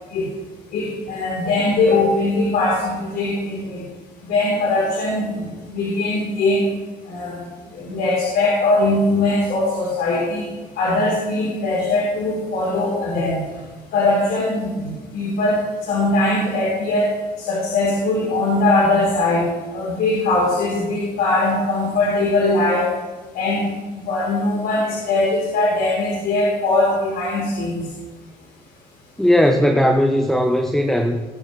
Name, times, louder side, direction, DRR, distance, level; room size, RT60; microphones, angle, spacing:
voice 1, 0.7-3.8 4.2-5.5 5.7-6.7 7.1-7.3 7.7-10.5 10.8-13.4 13.9-17.1 17.4-19.4 19.7-22.9 23.3-23.7 24.0-27.8, left 2 dB, 70° left, -6 dB, 3.7 m, -20 dB
voice 2, 29.2-31.2, equal, 5° left, 5 dB, 0.8 m, -17 dB
19.0 x 7.7 x 3.2 m, 1.3 s
cardioid pair, 110°, 17 cm